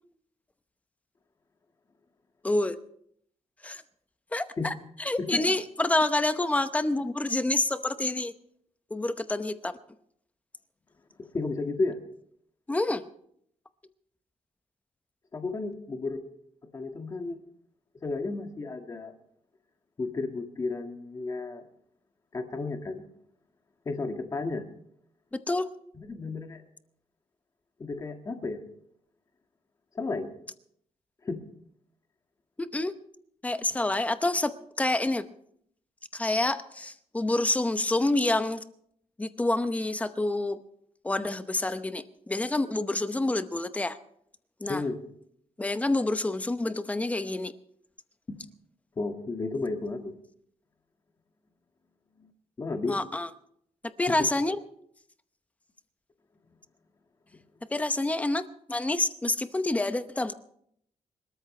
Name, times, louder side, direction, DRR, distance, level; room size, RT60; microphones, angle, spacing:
voice 1, 2.4-2.8 3.6-3.8 4.3-8.3 8.9-9.8 12.7-13.0 25.5-25.6 32.6-33.0 33.4-35.3 36.1-38.6 39.2-40.6 41.0-44.0 44.6-44.8 45.6-47.5 52.9-53.3 54.0-54.6 57.7-60.3, left 2 dB, 10° left, 10 dB, 0.8 m, -28 dB
voice 2, 11.2-12.0 15.3-16.2 16.7-17.4 18.0-19.1 20.0-21.7 22.3-23.1 23.9-24.7 26.0-26.6 27.8-28.6 30.0-30.3 31.2-31.5 44.7-45.0 48.3-48.4 49.0-50.1 52.6-53.0 54.1-54.2, left 3 dB, 25° left, 4 dB, 1.8 m, -32 dB
26.0 x 13.5 x 3.3 m, 0.67 s
wide cardioid pair, 175°, 12 cm